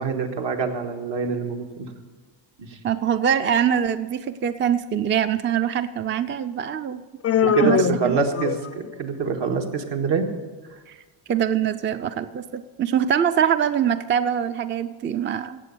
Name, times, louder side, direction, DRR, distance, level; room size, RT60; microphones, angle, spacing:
voice 1, 0.0-1.9 2.6-2.7 7.4-10.3, right 5 dB, 65° right, 3 dB, 1.8 m, -25 dB
voice 2, 2.8-7.0 7.5-8.2 10.9-11.0 11.3-15.6, right 8 dB, 25° right, 11 dB, 0.4 m, -23 dB
Human voice, 7.2-8.9, left 9 dB, 35° left, 0.4 m, -23 dB
17.5 x 7.5 x 6.8 m, 1.3 s
cardioid pair, 115°, 45 cm